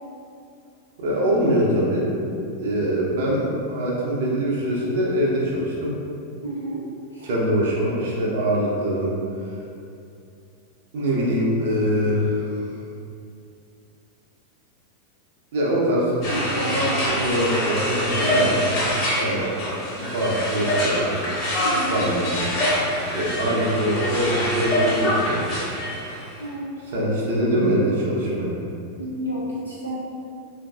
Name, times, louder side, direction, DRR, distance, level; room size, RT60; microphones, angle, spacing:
voice 1, 1.0-2.1 2.6-5.9 7.2-9.1 9.4-9.5 10.9-12.5 15.5-18.6 19.2-19.5 20.0-21.1 21.9-22.4 22.9-25.6 26.8-28.6, equal, 55° right, -4 dB, 0.7 m, -23 dB
voice 2, 6.4-6.8 7.1-7.3 16.4-16.8 17.1-17.4 21.6-22.0 26.4-26.8 29.0-30.0, equal, 85° right, -8 dB, 0.4 m, -31 dB
sound 1, 16.2-26.3, equal, 35° left, 1.1 m, -25 dB
3.8 x 2.6 x 2.3 m, 2.5 s
figure-of-eight pair, 90°, 0 cm